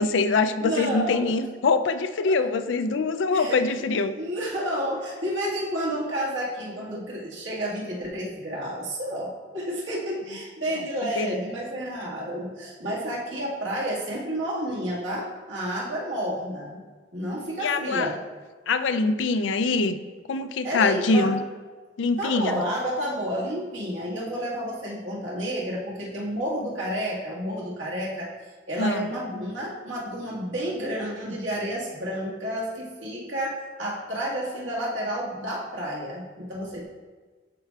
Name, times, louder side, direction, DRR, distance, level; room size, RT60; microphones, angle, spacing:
voice 1, 0.0-4.1 11.0-11.3 17.6-18.1 18.7-20.0 20.3-21.4 22.0-22.6 28.8-29.1, left 3 dB, 70° left, 10 dB, 0.4 m, -24 dB
voice 2, 0.6-1.3 2.3-2.4 3.3-3.6 4.2-16.8 17.1-18.2 20.6-21.4 22.2-28.3 28.7-36.8, equal, 75° right, -5 dB, 1.8 m, -30 dB
12.0 x 4.5 x 2.4 m, 1.4 s
head